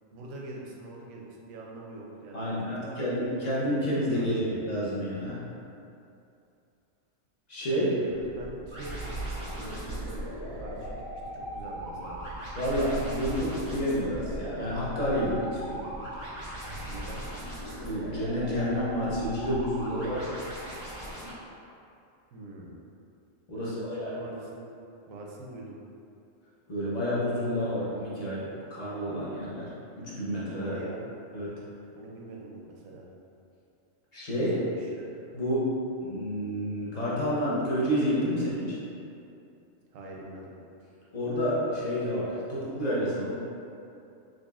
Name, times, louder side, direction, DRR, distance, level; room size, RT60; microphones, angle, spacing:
voice 1, 0.1-3.9 4.1-4.5 7.6-10.2 10.5-12.2 16.9-17.2 22.3-22.8 23.6-24.7 25.1-25.8 30.5-31.1 31.9-33.1 34.4-34.9 39.9-40.5, right 2 dB, 85° right, -2 dB, 1.0 m, -43 dB
voice 2, 2.3-5.4 7.5-8.0 12.5-15.9 17.8-20.4 23.5-24.1 26.7-28.4 28.7-29.7 30.0-30.8 31.3-31.5 34.1-34.6 35.3-35.6 36.0-38.8 41.1-43.3, equal, 40° left, -8 dB, 0.7 m, -29 dB
sound 1, 8.1-21.1, right 1 dB, 65° right, 0.4 m, -41 dB
sound 2, 8.7-21.3, equal, 85° left, 1.8 m, -40 dB
3.9 x 3.2 x 2.4 m, 2.6 s
omnidirectional pair, 1.3 m